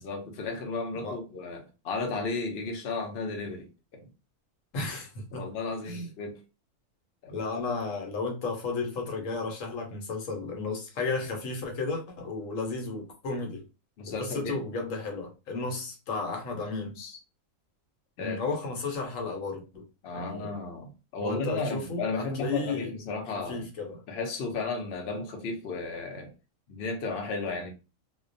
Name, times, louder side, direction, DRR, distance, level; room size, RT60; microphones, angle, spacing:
voice 1, 0.0-4.1 5.3-6.4 7.2-7.3 14.0-14.6 17.0-17.2 18.2-18.5 20.0-23.7 24.1-26.3 26.7-27.7, left 3 dB, 60° left, 0.7 m, -34 dB
voice 2, 4.7-5.4 5.9-6.1 7.3-13.6 14.2-17.0 18.2-19.9 20.1-20.5 21.2-22.9 23.5-24.0, left 3 dB, 75° left, 1.1 m, -33 dB
2.2 x 2.2 x 2.5 m
omnidirectional pair, 1.4 m